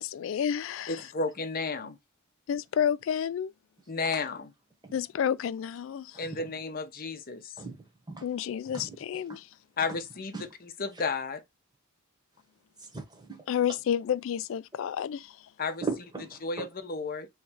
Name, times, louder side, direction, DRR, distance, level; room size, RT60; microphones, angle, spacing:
voice 1, 0.0-1.1 2.5-3.5 4.9-6.2 8.2-9.5 13.5-15.4, left 8 dB, 65° left, 0.3 m, -30 dB
voice 2, 0.9-2.0 3.9-4.5 6.2-7.5 9.8-11.4 15.6-15.8 16.4-17.3, left 4 dB, 45° left, 0.7 m, -33 dB
voice 3, 12.8-13.4 15.8-16.7, right 4 dB, 20° right, 1.2 m, -38 dB
3.2 x 3.2 x 4.7 m
head